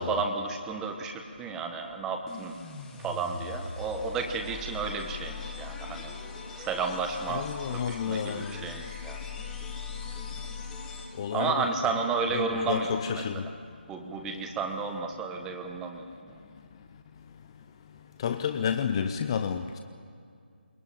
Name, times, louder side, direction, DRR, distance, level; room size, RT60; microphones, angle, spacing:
voice 1, 0.0-2.5 3.0-6.1 6.6-9.2 11.3-13.2 13.9-16.3, right 4 dB, 10° right, 5 dB, 1.2 m, -32 dB
sound 1, 2.3-11.4, left 4 dB, 10° left, 1.9 m, -40 dB
voice 2, 7.3-8.7 11.2-11.9 12.3-13.5 18.2-19.8, left 7 dB, 25° left, 8 dB, 0.7 m, -31 dB
22.0 x 18.5 x 9.2 m, 2.3 s
figure-of-eight pair, 160°, 6 cm